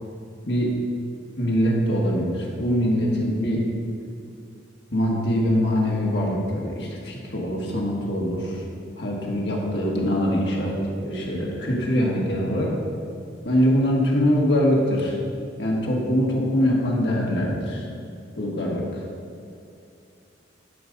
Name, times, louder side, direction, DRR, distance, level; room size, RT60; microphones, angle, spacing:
voice 1, 1.4-3.6 4.9-8.6 9.0-12.7 13.4-15.2 15.6-17.9 18.4-19.0, equal, 65° left, -3 dB, 1.7 m, -23 dB
12.0 x 4.0 x 5.3 m, 2.5 s
head